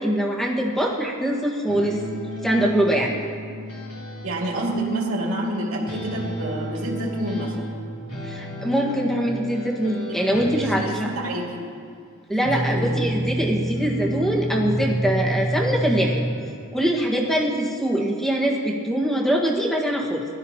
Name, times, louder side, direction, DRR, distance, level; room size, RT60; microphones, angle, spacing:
voice 1, 0.0-2.0 2.4-3.2 8.2-11.1 12.3-16.2 16.7-20.3, right 1 dB, ahead, -2 dB, 1.5 m, -23 dB
sound 1, 1.7-4.6 5.8-11.0 12.4-16.5, right 1 dB, 65° left, 3.6 m, -30 dB
voice 2, 4.2-7.7 10.1-10.2 10.5-11.6 12.3-13.0, right 1 dB, 70° right, -2 dB, 2.2 m, -28 dB
20.5 x 12.0 x 2.9 m, 2.3 s
head